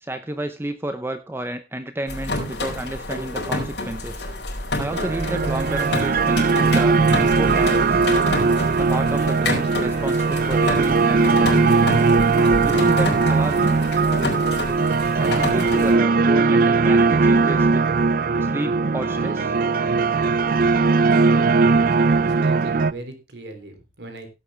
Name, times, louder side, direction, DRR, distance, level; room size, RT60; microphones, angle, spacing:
voice 1, 0.0-4.2 4.8-8.1 8.8-11.6 12.6-13.8 15.1-17.8 18.4-19.5, right 1 dB, 15° right, 9 dB, 0.7 m, -31 dB
sound 1, 2.1-15.9, left 2 dB, 75° left, 4.7 m, -29 dB
sound 2, 4.9-22.9, right 4 dB, 55° right, 0.5 m, -19 dB
Wind instrument woodwind instrument, 9.7-20.1, left 5 dB, 30° left, 4.7 m, -42 dB
voice 2, 20.7-21.7 22.0-24.3, right 1 dB, 75° right, 6 dB, 3.2 m, -39 dB
16.5 x 8.4 x 3.3 m, 0.26 s
head